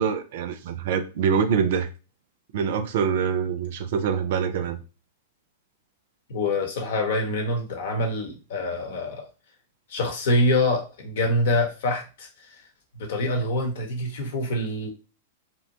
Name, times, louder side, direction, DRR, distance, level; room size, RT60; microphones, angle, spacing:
voice 1, 0.0-1.9 2.5-4.8, right 6 dB, 60° right, 0.4 m, -25 dB
voice 2, 6.3-9.3 9.9-12.5 13.0-14.9, left 1 dB, 65° left, 0.9 m, -25 dB
2.8 x 2.2 x 2.8 m
hypercardioid pair, 110°, 0 cm